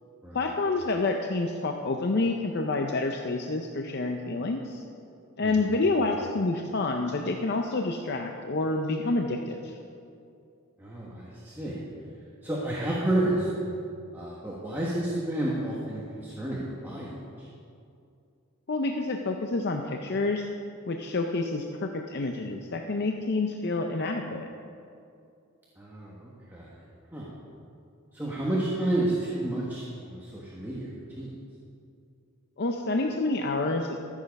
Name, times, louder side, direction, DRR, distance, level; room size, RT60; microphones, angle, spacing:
voice 1, 0.3-4.8 5.4-9.8 18.7-20.5 20.9-24.5 32.6-34.0, left 3 dB, 50° left, 3 dB, 0.6 m, -28 dB
voice 2, 10.8-11.8 12.4-13.5 14.1-17.1 25.8-26.7 27.1-27.3 28.1-30.9 31.2-31.3, right 1 dB, 10° right, -6 dB, 1.3 m, -30 dB
14.0 x 7.4 x 5.3 m, 2.5 s
head